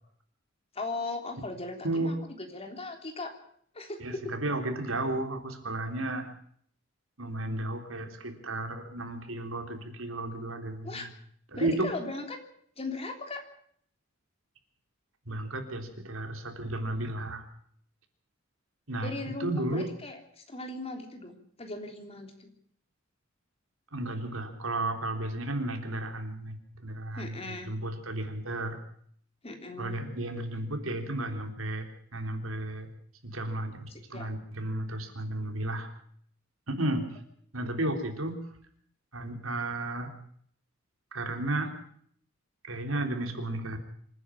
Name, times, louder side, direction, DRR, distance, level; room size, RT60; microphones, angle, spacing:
voice 1, 0.7-3.3 3.7-4.3 10.8-11.1 11.5-12.4 12.8-13.4 19.0-22.5 27.1-27.7 29.4-30.0 33.9-34.4, left 2 dB, 30° left, 4 dB, 3.4 m, -38 dB
voice 2, 1.8-2.2 4.0-6.3 7.2-11.0 11.5-11.9 15.3-17.5 18.9-19.9 23.9-28.8 29.8-32.9 33.2-35.9 36.7-37.2 37.5-38.4 39.1-40.1 41.1-41.8 42.6-43.8, right 1 dB, 80° right, 5 dB, 3.5 m, -33 dB
26.0 x 10.0 x 9.9 m, 0.63 s
head